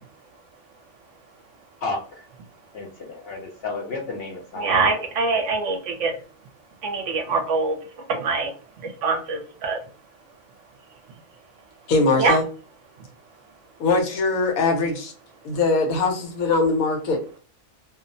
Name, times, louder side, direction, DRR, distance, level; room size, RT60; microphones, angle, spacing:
voice 1, 1.8-2.3 2.7-4.6 4.9-5.0, left 3 dB, 60° left, 1 dB, 0.7 m, -32 dB
voice 2, 4.6-6.1 6.8-7.8 8.1-8.5 9.0-9.8 12.2-12.4, right 4 dB, 65° right, 4 dB, 0.9 m, -23 dB
voice 3, 11.9-12.4 13.8-15.1 15.4-17.4, left 3 dB, 80° left, 3 dB, 1.2 m, -21 dB
2.7 x 2.0 x 2.5 m, 0.39 s
omnidirectional pair, 1.4 m